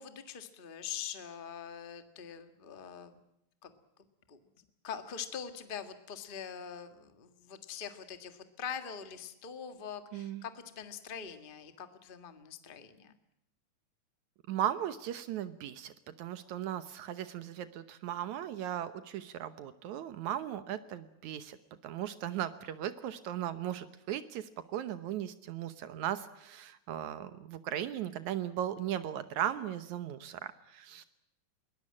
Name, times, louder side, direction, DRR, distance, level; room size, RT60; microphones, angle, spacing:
voice 1, 0.0-3.2 3.6-3.7 4.3-4.4 4.8-13.1, left 7 dB, 25° left, 9 dB, 1.4 m, -43 dB
voice 2, 10.1-10.4 14.5-15.9 16.2-21.6 21.8-31.0, right 11 dB, 80° right, 12 dB, 2.4 m, -37 dB
23.0 x 19.5 x 8.6 m, 0.82 s
omnidirectional pair, 3.3 m